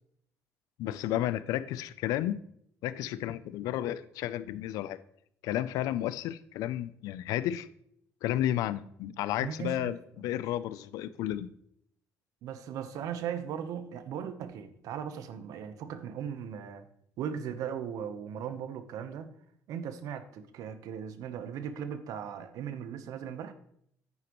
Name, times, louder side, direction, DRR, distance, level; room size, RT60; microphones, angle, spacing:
voice 1, 0.8-2.4 2.8-5.0 5.4-7.7 8.2-11.5, left 13 dB, 85° left, 16 dB, 0.5 m, -32 dB
voice 2, 9.4-9.9 10.2-10.4 12.4-16.8 17.2-19.3 19.7-23.5, right 8 dB, 75° right, 10 dB, 0.9 m, -38 dB
9.8 x 9.4 x 3.1 m, 0.70 s
cardioid pair, 85°, 6 cm